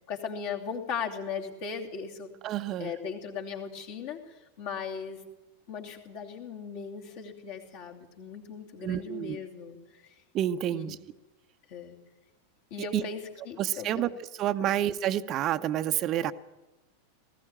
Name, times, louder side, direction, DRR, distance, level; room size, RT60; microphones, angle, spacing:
voice 1, 0.1-2.3 2.8-4.2 4.6-5.2 5.7-10.1 10.7-11.0 11.7-12.0 12.7-14.0 14.6-14.7, left 6 dB, 50° left, 1 dB, 2.8 m, -38 dB
voice 2, 2.4-2.9 8.8-9.4 10.3-11.0 12.9-13.0 13.6-14.1 14.4-16.3, right 11 dB, 35° right, 11 dB, 0.7 m, -29 dB
19.5 x 15.0 x 8.8 m, 1.1 s
figure-of-eight pair, 90°, 0 cm